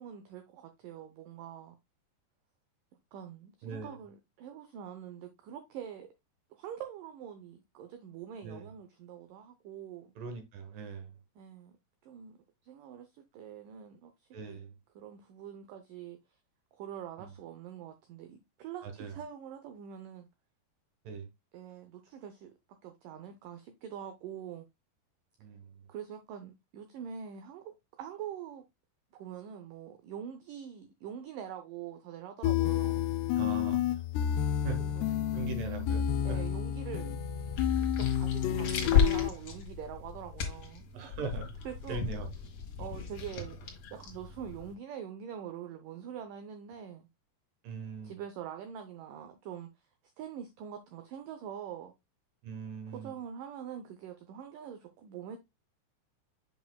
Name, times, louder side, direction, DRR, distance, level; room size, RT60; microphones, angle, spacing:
voice 1, 0.0-1.8 3.1-6.1 6.5-10.1 11.4-11.8 12.0-13.1 13.3-14.6 15.0-16.2 16.7-20.3 21.5-22.5 22.8-24.7 25.9-28.7 29.1-33.1 34.8-35.0 35.3-35.6 36.2-37.1 37.8-40.9 41.7-42.0 42.8-47.1 48.0-49.7 50.2-51.9 52.9-55.4, right 9 dB, 80° right, 1.9 m, -44 dB
voice 2, 3.6-4.0 8.4-8.7 10.2-11.2 14.3-14.8 17.2-17.3 18.8-19.1 21.0-21.3 25.4-25.9 33.4-33.8 34.6-34.8 35.3-36.0 36.3-36.4 40.9-41.5 41.9-42.3 47.6-48.2 52.4-53.1, right 5 dB, 65° right, 2.5 m, -40 dB
sound 1, 32.4-39.3, left 10 dB, 85° left, 2.8 m, -30 dB
sound 2, 37.4-44.7, left 6 dB, 60° left, 1.8 m, -34 dB
7.6 x 5.7 x 2.2 m
omnidirectional pair, 4.7 m